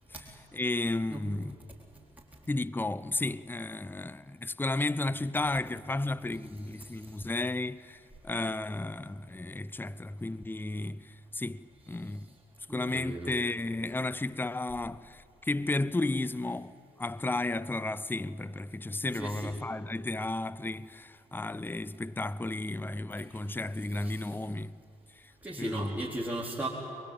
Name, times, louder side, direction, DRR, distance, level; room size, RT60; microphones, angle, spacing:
voice 1, 0.5-1.6 2.5-12.3 12.7-24.8 25.2-25.3 25.6-26.0, left 2 dB, 10° left, 0.7 m, -33 dB
voice 2, 12.7-13.3 19.2-19.6 24.0-24.2 25.4-26.7, right 1 dB, 10° right, 3.9 m, -36 dB
23.5 x 22.5 x 9.1 m
hypercardioid pair, 40°, 17 cm